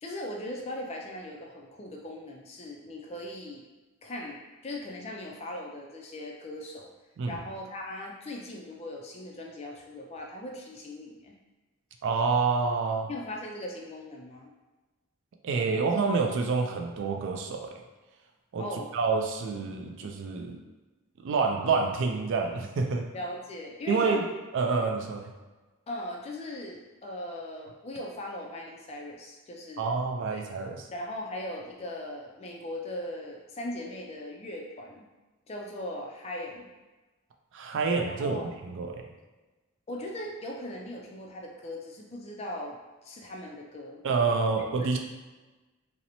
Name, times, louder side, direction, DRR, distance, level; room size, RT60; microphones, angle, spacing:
voice 1, 0.0-3.6 4.0-6.9 7.3-11.3 13.1-14.5 18.6-18.9 23.1-24.2 25.9-30.0 30.3-30.4 30.9-35.1 35.5-36.7 38.0-38.5 39.9-44.0 44.6-44.7, left 1 dB, 30° left, 0 dB, 0.3 m, -39 dB
voice 2, 12.0-13.1 15.4-17.8 18.5-18.6 18.9-20.6 21.2-23.1 23.9-24.3 24.5-25.3 29.8-30.8 37.5-38.4 38.6-39.0 44.0-45.0, right 4 dB, 60° right, 3 dB, 0.3 m, -27 dB
2.8 x 2.0 x 2.6 m, 1.2 s
head